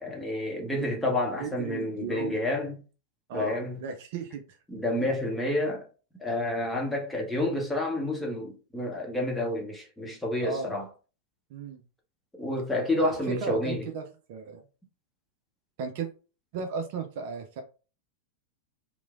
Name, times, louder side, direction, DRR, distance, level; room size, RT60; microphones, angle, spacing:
voice 1, 0.0-2.7 3.3-3.8 4.7-5.8 6.2-10.8 12.4-13.9, left 1 dB, 5° left, 0.9 m, -29 dB
voice 2, 1.4-2.4 3.3-4.6 10.4-10.7 11.5-11.8 13.0-14.6 15.8-16.1 16.5-17.6, right 5 dB, 50° right, 0.4 m, -35 dB
3.0 x 2.1 x 2.4 m
figure-of-eight pair, 90°, 0 cm